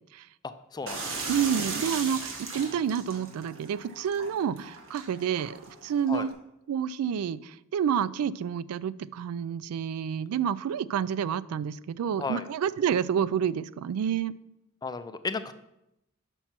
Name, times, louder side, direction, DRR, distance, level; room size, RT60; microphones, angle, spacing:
voice 1, 0.7-1.2 6.1-6.3 12.2-12.4 14.8-15.5, left 4 dB, 20° left, 11 dB, 0.3 m, -34 dB
sound 1, 0.9-6.3, right 4 dB, 65° right, 1.2 m, -37 dB
voice 2, 1.3-6.3 6.7-14.3, right 8 dB, 90° right, 17 dB, 0.3 m, -29 dB
5.9 x 5.4 x 5.8 m, 0.86 s
head